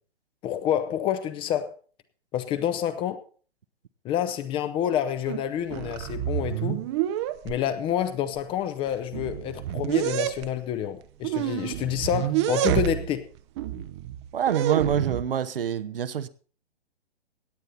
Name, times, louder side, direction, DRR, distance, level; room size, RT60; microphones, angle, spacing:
voice 1, 0.4-1.7 2.3-3.2 4.0-6.8 7.4-13.2, left 10 dB, 15° left, 0.7 m, -28 dB
sound 1, 5.3-5.4 5.7-7.6 8.4-8.5 8.9-10.5 11.2-13.2 13.6-15.2, right 13 dB, 25° right, 0.7 m, -28 dB
voice 2, 14.3-16.3, right 8 dB, 60° right, 0.9 m, -26 dB
17.0 x 9.0 x 4.1 m
figure-of-eight pair, 125°, 32 cm